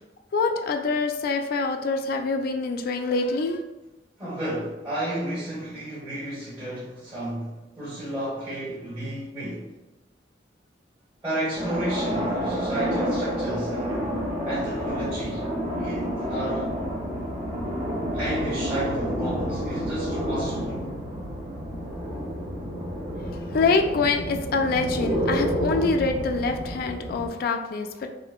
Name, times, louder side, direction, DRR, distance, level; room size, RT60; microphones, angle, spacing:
voice 1, 0.3-3.6 23.2-28.1, left 4 dB, 55° left, 4 dB, 0.3 m, -25 dB
voice 2, 4.2-9.7 11.2-15.5 15.8-16.7 18.1-20.9, right 1 dB, 20° right, -13 dB, 1.3 m, -32 dB
sound 1, 11.5-27.3, equal, 40° right, 0.7 m, -29 dB
3.7 x 2.1 x 2.3 m, 1.0 s
head